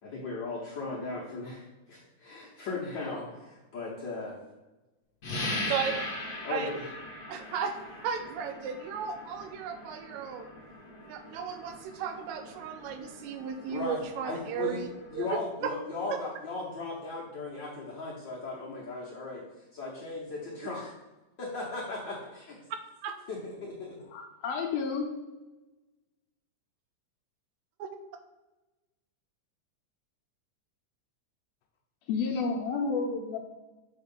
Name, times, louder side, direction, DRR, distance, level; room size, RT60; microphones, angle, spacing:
voice 1, 0.0-4.4 5.5-6.0 6.4-6.8 13.7-14.8 15.1-20.9 21.4-22.6 23.3-23.9, left 3 dB, 60° left, -5 dB, 1.2 m, -37 dB
sound 1, 5.2-15.5, left 1 dB, 45° left, 1.4 m, -40 dB
voice 2, 7.3-10.5 11.1-14.9 15.2-15.7 23.0-23.2 27.8-27.9, right 7 dB, 80° right, 7 dB, 1.9 m, -35 dB
voice 3, 24.1-25.1 32.1-33.4, left 4 dB, 75° left, 2 dB, 1.7 m, -30 dB
6.9 x 3.2 x 5.3 m, 1.1 s
omnidirectional pair, 3.4 m